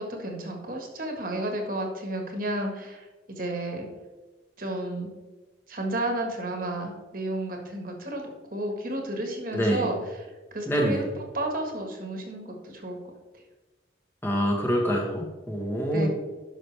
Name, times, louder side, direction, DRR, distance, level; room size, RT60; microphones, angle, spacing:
voice 1, 0.0-3.9 4.6-5.1 5.7-8.2 8.5-13.0 15.9-16.1, right 1 dB, 45° right, 2 dB, 1.6 m, -32 dB
voice 2, 9.5-9.8 10.7-11.0 14.2-16.1, equal, 10° left, -1 dB, 1.2 m, -25 dB
11.5 x 6.0 x 3.4 m, 1.2 s
head